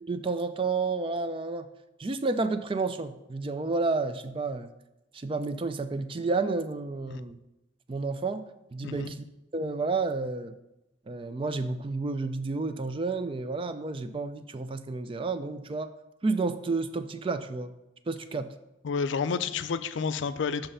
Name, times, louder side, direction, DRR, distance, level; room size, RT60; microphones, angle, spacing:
voice 1, 0.0-1.7 2.0-4.7 5.1-7.4 7.9-8.4 8.7-9.2 9.5-10.5 11.1-15.9 16.2-17.7 18.1-18.5, right 3 dB, 25° right, 10 dB, 0.3 m, -30 dB
voice 2, 18.8-20.7, left 5 dB, 65° left, 12 dB, 0.4 m, -30 dB
5.9 x 5.5 x 5.5 m, 0.92 s
head